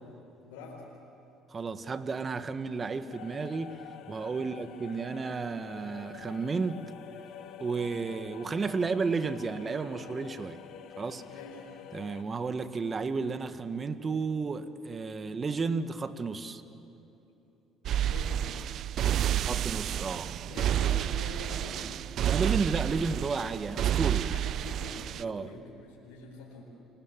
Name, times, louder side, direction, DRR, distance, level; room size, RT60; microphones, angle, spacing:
voice 1, 0.4-0.9 4.4-4.6 11.3-11.7 18.0-18.5 19.2-19.8 20.5-21.9 24.2-26.6, left 3 dB, 85° left, 4.7 m, -45 dB
voice 2, 1.5-3.8 4.1-6.8 7.6-10.6 11.0-11.2 11.9-16.6 19.4-20.3 22.2-24.3 25.2-25.5, right 4 dB, 35° right, 1.5 m, -32 dB
sound 1, 3.1-12.2, left 9 dB, 70° left, 1.6 m, -48 dB
sound 2, 17.9-25.2, right 11 dB, 60° right, 0.5 m, -30 dB
28.5 x 24.0 x 7.5 m
supercardioid pair, 75°, 0 cm